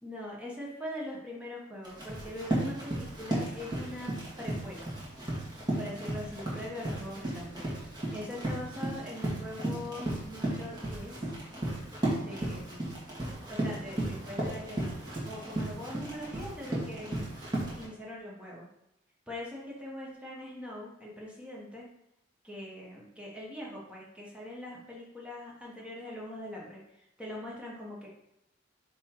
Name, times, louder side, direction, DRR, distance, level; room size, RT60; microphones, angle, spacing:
voice 1, 0.0-4.9 5.8-7.7 8.1-11.3 12.1-12.9 13.5-17.3 17.8-18.7 19.3-21.9 22.4-28.1, left 1 dB, 5° right, -4 dB, 1.4 m, -42 dB
Run, 1.8-17.9, right 1 dB, 25° right, 2.1 m, -35 dB
9.4 x 3.2 x 3.9 m, 0.85 s
head